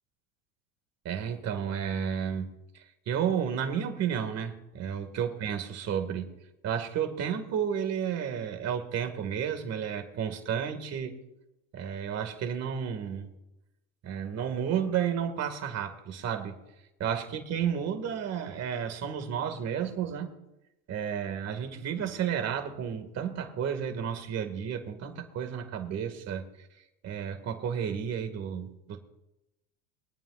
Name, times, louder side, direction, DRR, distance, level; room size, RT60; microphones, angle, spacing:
voice 1, 1.0-6.4 6.6-11.1 11.7-13.3 14.0-16.5 17.0-20.3 20.9-26.7 27.0-29.0, right 8 dB, 45° right, 6 dB, 2.1 m, -32 dB
23.0 x 9.2 x 2.5 m, 0.92 s
supercardioid pair, 110°, 38 cm